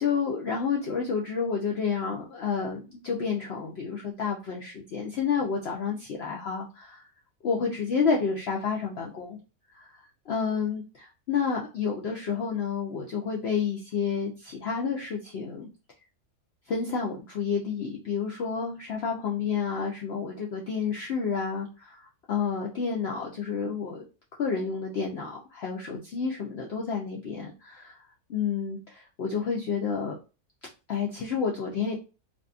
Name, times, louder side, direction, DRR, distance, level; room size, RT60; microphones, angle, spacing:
voice 1, 0.0-7.0 7.4-9.4 9.7-10.0 10.3-15.7 16.7-24.0 24.4-28.0 28.3-30.2 30.9-31.9, left 6 dB, 80° left, -1 dB, 0.5 m, -30 dB
2.6 x 2.3 x 2.4 m, 0.32 s
omnidirectional pair, 1.6 m